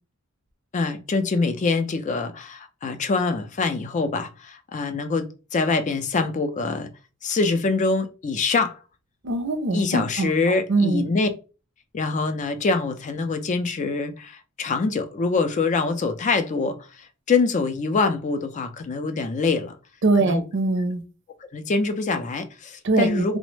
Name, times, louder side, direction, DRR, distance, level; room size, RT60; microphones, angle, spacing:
voice 1, 0.7-6.9 7.2-8.8 9.7-11.3 11.9-19.7 20.2-20.4 21.5-23.4, left 4 dB, 35° left, 0.4 m, -24 dB
voice 2, 9.2-10.3 10.7-11.0 20.0-21.0 22.8-23.4, right 3 dB, 60° right, 0.5 m, -22 dB
3.0 x 2.0 x 3.1 m
head